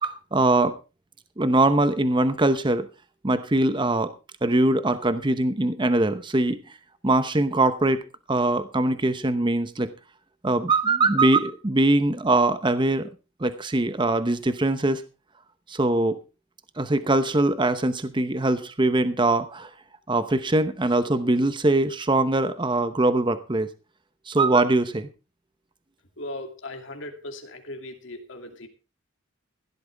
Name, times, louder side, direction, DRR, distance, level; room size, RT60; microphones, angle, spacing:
voice 1, 0.0-0.7 1.4-2.9 3.2-4.1 4.4-6.6 7.0-8.0 8.3-9.9 10.4-13.1 13.4-15.0 15.7-16.2 16.8-19.7 20.1-23.7 24.3-25.1, right 2 dB, 25° right, 12 dB, 0.8 m, -22 dB
voice 2, 26.2-28.7, left 1 dB, 65° left, 5 dB, 2.6 m, -38 dB
16.5 x 12.0 x 3.4 m, 0.30 s
head